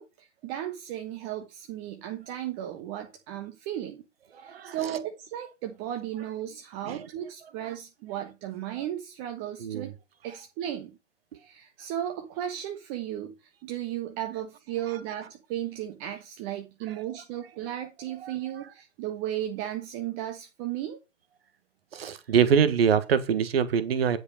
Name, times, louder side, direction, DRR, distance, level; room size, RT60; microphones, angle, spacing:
voice 1, 0.0-4.0 4.4-9.9 10.2-11.0 11.3-21.0, right 11 dB, 30° right, 1.3 m, -35 dB
voice 2, 4.4-5.0 6.8-7.1 7.6-7.7 9.6-9.9 18.2-18.3 21.9-24.2, right 7 dB, 55° right, 1.5 m, -24 dB
10.0 x 5.3 x 5.1 m
figure-of-eight pair, 110°, 37 cm